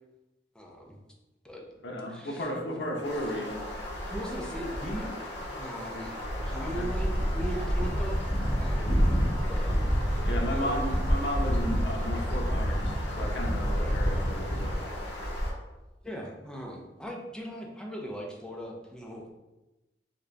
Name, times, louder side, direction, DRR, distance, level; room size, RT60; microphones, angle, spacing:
voice 1, 0.5-1.0 1.4-1.6 2.1-2.5 4.0-5.1 5.4-6.2 6.4-8.2 8.5-9.1 9.5-9.8 10.5-10.9 16.0-19.3, equal, 5° left, -1 dB, 0.5 m, -39 dB
voice 2, 1.8-3.6 6.6-6.9 10.2-14.8, equal, 90° left, 0 dB, 0.7 m, -34 dB
sound 1, 3.0-15.5, equal, 70° left, 1.2 m, -29 dB
3.8 x 2.3 x 3.3 m, 1.0 s
head